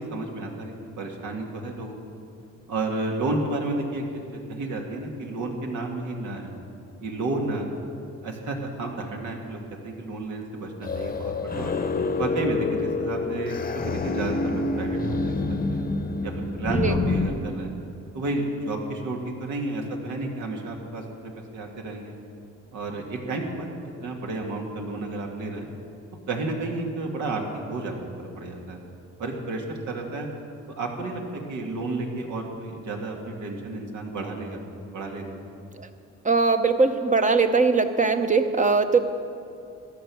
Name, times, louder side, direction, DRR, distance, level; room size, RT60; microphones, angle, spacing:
voice 1, 0.0-2.0 2.7-6.5 7.0-7.6 8.2-11.7 12.2-13.6 13.9-15.4 15.7-15.8 16.2-17.7 18.1-22.1 22.7-23.7 24.0-25.7 26.3-28.8 29.2-30.3 30.8-34.6 34.9-35.3, right 2 dB, 75° right, 1 dB, 2.2 m, -31 dB
sound 1, 10.8-17.3, left 3 dB, 30° left, 0.9 m, -27 dB
voice 2, 36.2-39.0, right 4 dB, 25° right, 7 dB, 0.9 m, -21 dB
14.5 x 10.0 x 6.2 m, 2.5 s
cardioid pair, 90°, 30 cm